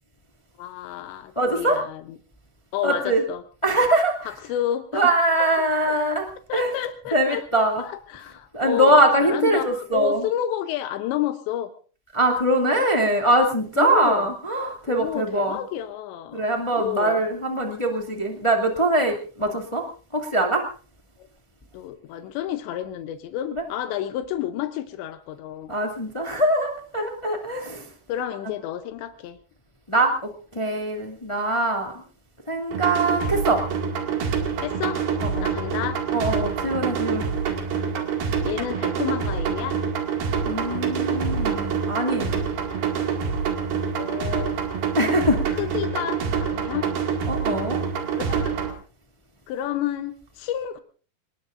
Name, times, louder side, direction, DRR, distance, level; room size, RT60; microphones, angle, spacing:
voice 1, 0.6-2.0 2.7-3.4 4.3-5.1 5.6-5.9 6.5-7.4 7.8-9.0 9.3-11.7 13.8-14.3 14.9-16.5 16.7-17.2 19.4-19.6 21.2-21.3 21.7-25.8 28.1-29.4 34.6-35.0 35.4-36.0 38.4-39.8 43.9-44.6 45.0-47.3 48.1-48.6 49.5-50.8, left 11 dB, 85° left, 9 dB, 3.1 m, -30 dB
voice 2, 1.3-1.8 2.8-3.2 3.6-4.1 4.9-6.7 7.1-7.8 8.5-10.2 12.1-15.6 16.3-19.8 20.1-20.6 23.5-23.6 25.7-27.9 29.9-30.1 30.5-31.9 32.5-33.6 35.2-35.5 36.1-37.2 40.4-42.4 45.0-45.4 47.3-47.8, right 1 dB, 25° left, 2 dB, 0.6 m, -22 dB
sound 1, 32.7-48.7, right 6 dB, 60° right, 3.8 m, -26 dB
27.5 x 19.5 x 2.6 m, 0.39 s
omnidirectional pair, 5.0 m